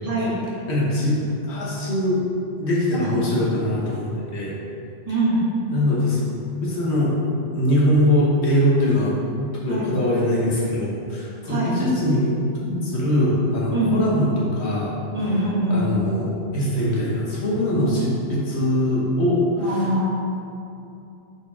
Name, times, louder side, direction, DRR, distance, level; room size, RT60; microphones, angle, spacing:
voice 1, 0.7-1.1 1.5-2.2 2.6-4.0 4.3-4.6 5.7-6.2 6.6-7.1 7.5-9.1 9.5-12.4 12.7-14.9 15.7-19.9, left 1 dB, 70° left, -6 dB, 1.4 m, -22 dB
voice 2, 5.0-5.4 9.7-9.9 11.5-11.8 13.7-14.0 15.1-15.8 19.6-20.1, right 1 dB, 30° right, -10 dB, 1.7 m, -23 dB
5.2 x 4.4 x 4.2 m, 2.7 s
omnidirectional pair, 1.2 m